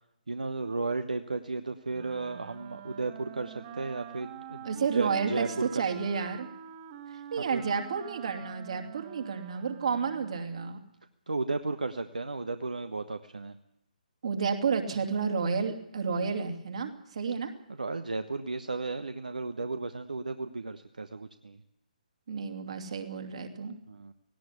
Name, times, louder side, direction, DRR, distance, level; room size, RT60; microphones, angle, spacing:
voice 1, 0.3-5.7 7.4-7.6 11.3-13.6 17.8-21.6 23.9-24.1, right 3 dB, 65° right, 9 dB, 1.1 m, -34 dB
Wind instrument woodwind instrument, 1.9-10.6, right 9 dB, 30° right, 1.2 m, -46 dB
voice 2, 4.6-6.5 7.1-10.8 14.2-17.5 22.3-23.8, right 5 dB, 50° right, 5 dB, 2.7 m, -31 dB
18.0 x 18.0 x 8.4 m, 0.83 s
figure-of-eight pair, 135°, 5 cm